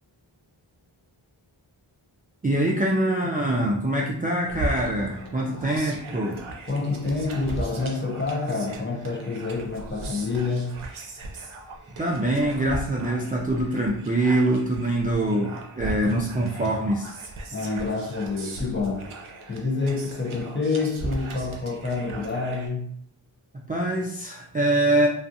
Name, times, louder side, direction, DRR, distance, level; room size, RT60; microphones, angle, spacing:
voice 1, 2.4-6.4 12.0-17.2 23.5-25.1, right 1 dB, 20° right, 0.3 m, -24 dB
sound 1, 4.5-22.7, right 2 dB, 75° right, 0.6 m, -38 dB
voice 2, 6.7-10.8 17.5-19.1 19.5-23.0, left 3 dB, 25° left, 0.6 m, -28 dB
2.4 x 2.3 x 2.6 m
wide cardioid pair, 40°, 49 cm